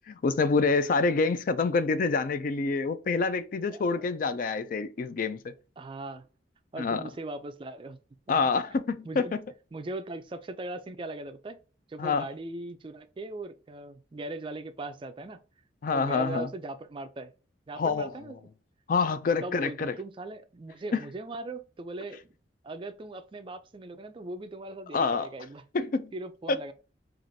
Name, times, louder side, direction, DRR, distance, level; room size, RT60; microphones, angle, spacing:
voice 1, 0.1-5.5 6.8-7.0 8.3-9.3 12.0-12.3 15.8-16.5 17.8-18.2 18.9-19.9 24.9-25.3 25.7-26.1 26.5-26.6, left 4 dB, 45° left, 0.3 m, -27 dB
voice 2, 3.7-4.1 5.8-6.3 6.7-8.0 8.3-8.4 9.0-9.4 9.7-11.6 11.9-15.4 15.9-17.3 17.7-18.4 19.4-22.2 22.6-25.6 26.1-26.7, right 2 dB, 30° right, 0.3 m, -39 dB
4.6 x 2.5 x 2.6 m
head